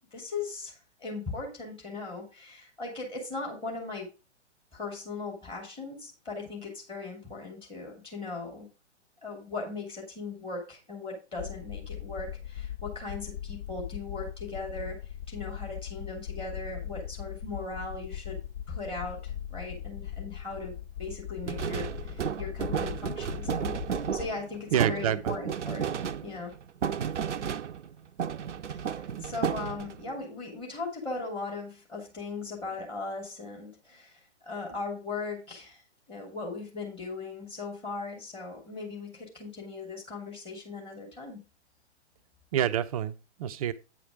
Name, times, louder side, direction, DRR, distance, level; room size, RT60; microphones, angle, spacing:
voice 1, 0.1-4.1 4.7-8.7 9.2-15.0 15.3-18.4 18.7-25.9 26.2-26.6 28.7-35.8 36.1-41.4, left 3 dB, 15° left, 2.8 m, -38 dB
sound 1, 11.4-24.3, left 10 dB, 45° left, 0.9 m, -39 dB
sound 2, 21.5-27.9 28.2-30.1, right 8 dB, 80° right, 0.6 m, -33 dB
voice 2, 24.7-25.4 27.0-27.1 29.2-29.3 42.5-43.7, right 10 dB, 30° right, 0.6 m, -28 dB
9.1 x 4.9 x 5.0 m
figure-of-eight pair, 120°, 35 cm